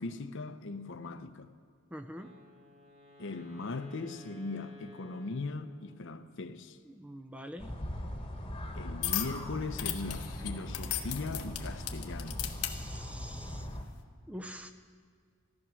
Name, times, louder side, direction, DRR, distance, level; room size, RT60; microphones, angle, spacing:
voice 1, 0.0-1.5 3.2-6.8 8.7-12.4, left 3 dB, 55° left, 0.7 m, -39 dB
voice 2, 1.9-2.3 6.8-7.8 12.6-13.7 14.3-14.7, equal, 5° right, 0.4 m, -45 dB
Wind instrument woodwind instrument, 2.1-6.3, left 1 dB, 30° right, 1.8 m, -55 dB
sound 1, 7.6-13.8, left 1 dB, 25° left, 1.2 m, -40 dB
sound 2, 9.0-9.4 9.8-12.7 13.5-13.7, left 13 dB, 90° left, 1.1 m, -35 dB
15.0 x 12.5 x 6.2 m
head